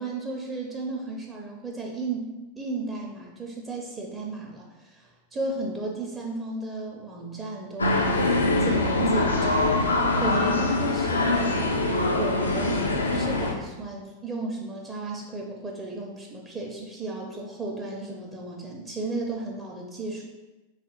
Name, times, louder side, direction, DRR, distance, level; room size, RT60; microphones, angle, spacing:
voice 1, 0.0-2.3 2.6-20.2, right 2 dB, 20° right, -1 dB, 0.6 m, -34 dB
sound 1, 7.8-13.5, left 2 dB, 80° left, 0.4 m, -23 dB
3.5 x 2.4 x 4.3 m, 1.1 s
figure-of-eight pair, 90°, 0 cm